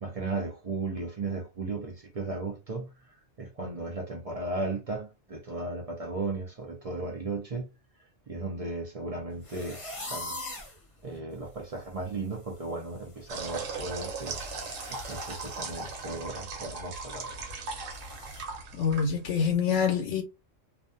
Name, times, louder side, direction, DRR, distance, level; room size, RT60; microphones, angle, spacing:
voice 1, 0.0-2.9 3.4-7.7 8.3-9.8 10.1-10.4 11.0-14.4 14.9-17.3, right 3 dB, 50° right, 0.4 m, -35 dB
sound 1, 9.4-10.8 11.4-11.5 11.8-12.1 12.4-16.1 16.4-16.6 17.0-17.1 17.9-18.4, left 2 dB, 30° left, 0.7 m, -43 dB
sound 2, 13.3-19.5, right 4 dB, 85° right, 1.1 m, -38 dB
voice 2, 18.8-20.2, left 6 dB, 75° left, 1.0 m, -26 dB
2.4 x 2.2 x 2.5 m
omnidirectional pair, 1.3 m